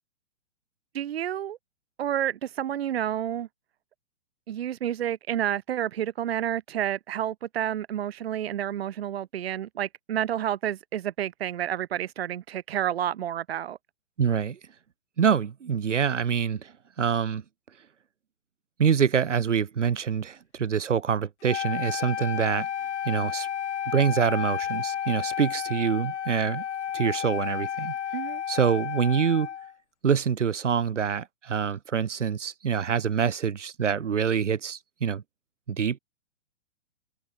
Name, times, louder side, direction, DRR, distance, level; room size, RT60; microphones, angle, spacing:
voice 1, 0.9-1.6 2.0-3.5 4.5-13.8 28.1-28.4, right 11 dB, 60° right, 2.0 m, -30 dB
voice 2, 14.2-14.6 15.2-16.7 17.0-17.4 18.8-22.7 23.0-23.5 23.9-26.6 26.9-27.9 28.5-29.5 30.0-35.2 35.7-36.0, right 7 dB, 85° right, 7.2 m, -25 dB
Wind instrument woodwind instrument, 21.4-29.7, left 9 dB, 70° left, 2.2 m, -32 dB
hypercardioid pair, 160°, 35 cm